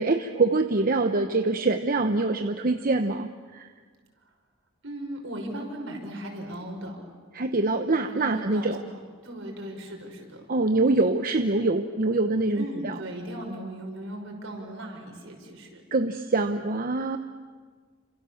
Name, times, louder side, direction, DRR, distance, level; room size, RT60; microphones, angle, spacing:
voice 1, 0.0-3.6 7.3-8.8 10.5-12.9 15.9-17.2, right 2 dB, 45° right, 7 dB, 0.9 m, -24 dB
voice 2, 4.8-7.0 8.0-10.5 12.5-15.8, right 1 dB, 70° right, 2 dB, 5.8 m, -37 dB
29.5 x 26.5 x 7.2 m, 1.6 s
head